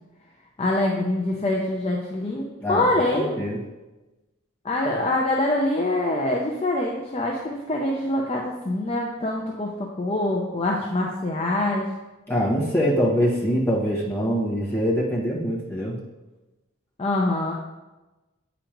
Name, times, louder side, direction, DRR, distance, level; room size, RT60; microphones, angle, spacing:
voice 1, 0.6-3.4 4.6-11.9 17.0-17.5, left 1 dB, 30° left, -1 dB, 0.6 m, -25 dB
voice 2, 3.1-3.6 12.3-16.0, equal, 10° left, -6 dB, 1.5 m, -24 dB
8.9 x 5.1 x 3.0 m, 1.1 s
head